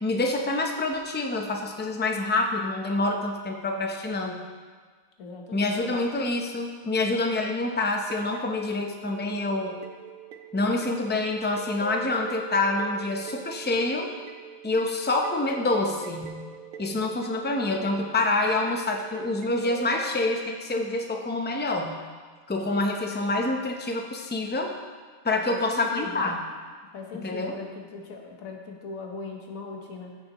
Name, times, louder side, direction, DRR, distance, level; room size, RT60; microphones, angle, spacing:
voice 1, 0.0-4.5 5.5-9.8 10.5-14.1 14.6-16.4 16.8-22.0 22.5-24.7 25.2-26.4 27.1-27.5, left 2 dB, 15° left, 3 dB, 0.4 m, -27 dB
voice 2, 5.2-6.0 25.3-26.2 26.9-30.2, left 5 dB, 80° left, 1 dB, 1.5 m, -39 dB
sound 1, 8.1-20.4, right 8 dB, 90° right, 1.1 m, -42 dB
14.5 x 6.7 x 3.0 m, 1.5 s
omnidirectional pair, 1.4 m